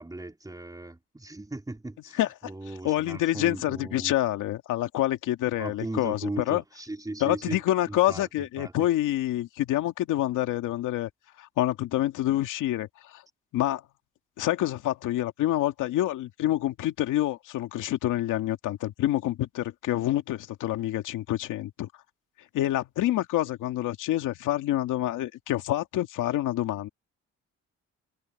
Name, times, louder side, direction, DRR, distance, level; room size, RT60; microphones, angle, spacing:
voice 1, 0.0-4.1 5.6-7.6 7.9-8.7, right 2 dB, 10° right, 3.8 m, -37 dB
voice 2, 2.1-2.5 2.8-6.6 7.2-11.1 11.4-13.2 13.5-13.8 14.4-21.9 22.5-26.9, left 14 dB, 90° left, 2.3 m, -27 dB
cardioid pair, 90°, 30 cm